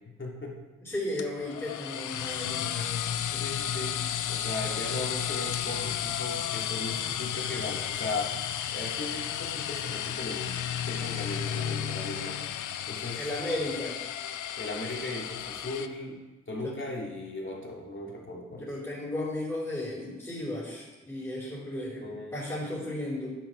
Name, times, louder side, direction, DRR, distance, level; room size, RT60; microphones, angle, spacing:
voice 1, 0.2-0.6 3.4-4.0 4.3-8.3 8.7-12.5 12.9-13.3 14.6-16.2 16.5-18.7 22.0-22.4, left 2 dB, 40° left, -2 dB, 3.0 m, -37 dB
voice 2, 0.8-3.0 3.3-3.5 13.1-14.0 16.6-16.8 18.5-23.4, left 1 dB, 10° left, -6 dB, 4.2 m, -35 dB
sound 1, 1.2-15.9, left 10 dB, 75° left, 0.6 m, -33 dB
10.5 x 6.3 x 6.1 m, 1.1 s
supercardioid pair, 45°, 30 cm